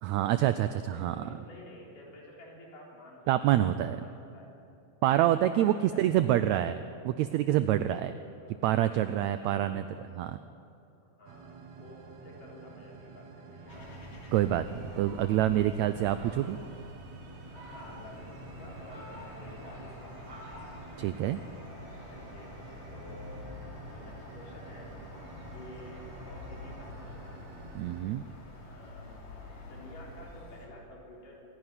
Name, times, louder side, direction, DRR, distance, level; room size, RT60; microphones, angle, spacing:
voice 1, 0.0-1.3 3.3-4.0 5.0-6.8 7.0-8.1 8.6-9.8 10.2-10.4 14.3-16.6 21.0-21.4 27.7-28.2, right 12 dB, 80° right, 12 dB, 1.6 m, -26 dB
voice 2, 0.9-4.6 5.2-6.6 7.7-8.6 9.1-9.9 10.2-10.3 11.0-14.2 15.3-15.6 16.0-16.3 17.5-20.1 22.1-22.6 22.9-24.9 25.4-27.4 28.6-31.5, left 1 dB, 75° left, -3 dB, 5.6 m, -51 dB
sound 1, 11.3-28.0, right 4 dB, 60° right, 2.5 m, -50 dB
Fowl, 13.5-15.6 16.1-16.7 17.3-18.2 18.7-21.5, equal, 40° right, 7.8 m, -52 dB
sound 2, 13.7-30.7, left 1 dB, 60° left, 4.2 m, -47 dB
26.0 x 11.0 x 9.8 m, 2.7 s
omnidirectional pair, 3.8 m